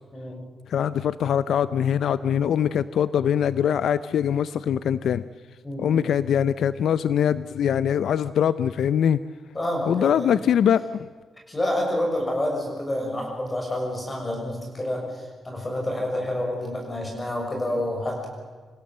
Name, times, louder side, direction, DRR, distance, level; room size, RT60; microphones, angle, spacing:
voice 1, 0.7-5.2 5.8-9.2 9.9-11.1, left 9 dB, 80° left, 15 dB, 0.5 m, -22 dB
voice 2, 5.6-6.0 9.5-10.3 11.5-18.3, left 1 dB, 20° left, 0 dB, 6.5 m, -28 dB
26.5 x 16.5 x 7.6 m, 1.5 s
wide cardioid pair, 145°, 0 cm